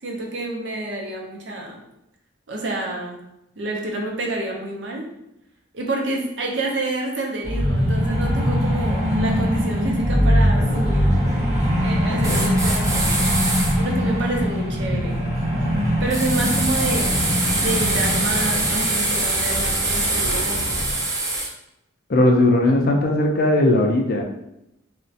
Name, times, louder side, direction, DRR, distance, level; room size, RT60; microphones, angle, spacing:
voice 1, 0.0-1.8 2.5-3.2 3.6-5.1 5.7-11.2 11.8-13.3 13.8-15.2 16.0-20.9, right 2 dB, 65° right, 0 dB, 0.5 m, -28 dB
sound 1, 7.4-20.9, equal, 35° right, 1.2 m, -22 dB
voice 2, 12.1-12.5 22.1-24.2, left 1 dB, 45° left, 1 dB, 0.4 m, -18 dB
sound 2, 12.2-13.7 16.1-21.5, right 2 dB, 15° right, 0.4 m, -24 dB
3.1 x 2.1 x 2.7 m, 0.84 s
head